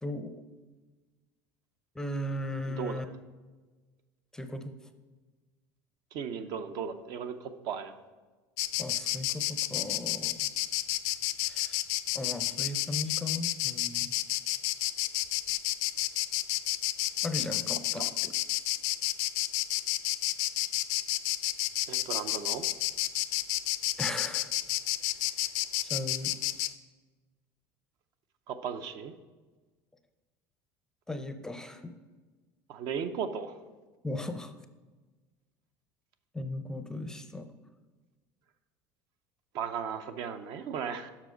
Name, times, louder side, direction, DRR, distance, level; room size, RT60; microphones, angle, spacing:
voice 1, 0.0-0.4 1.9-3.0 4.3-4.7 8.8-10.5 11.4-11.8 12.1-14.2 17.2-18.3 24.0-24.5 25.8-26.4 31.1-31.9 34.0-34.5 36.3-37.5, left 1 dB, 5° left, 8 dB, 0.5 m, -37 dB
voice 2, 2.7-3.0 6.1-7.9 18.0-18.1 21.9-22.6 28.5-29.1 32.7-33.6 39.5-41.1, right 7 dB, 60° right, 9 dB, 0.6 m, -36 dB
Insect, 8.6-26.7, left 16 dB, 70° left, 0.4 m, -30 dB
7.3 x 5.9 x 5.1 m, 1.3 s
cardioid pair, 135°, 8 cm